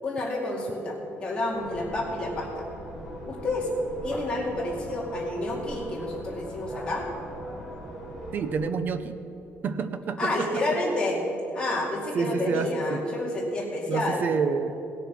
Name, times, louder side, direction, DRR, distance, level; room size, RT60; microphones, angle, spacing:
voice 1, 0.0-2.7 3.2-3.7 4.0-7.1 10.2-11.2 11.5-14.3, left 2 dB, 20° left, -3 dB, 2.4 m, -29 dB
sound 1, 1.5-8.5, equal, 10° right, 2.4 m, -40 dB
voice 2, 8.3-9.2 9.6-10.8 12.1-13.0 13.9-14.8, right 5 dB, 40° right, 10 dB, 0.6 m, -28 dB
17.5 x 6.8 x 6.1 m, 3.0 s
cardioid pair, 180°, 5 cm